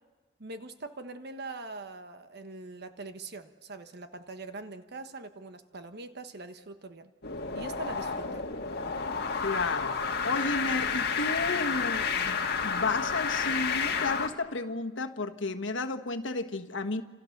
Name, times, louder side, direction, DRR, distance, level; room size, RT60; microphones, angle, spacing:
voice 1, 0.4-7.1 7.5-8.4, right 3 dB, 60° right, 1.3 m, -42 dB
sound 1, 7.2-14.3, left 5 dB, 55° left, 1.9 m, -30 dB
voice 2, 9.4-17.0, left 3 dB, 80° left, 1.4 m, -33 dB
29.0 x 27.5 x 6.6 m
head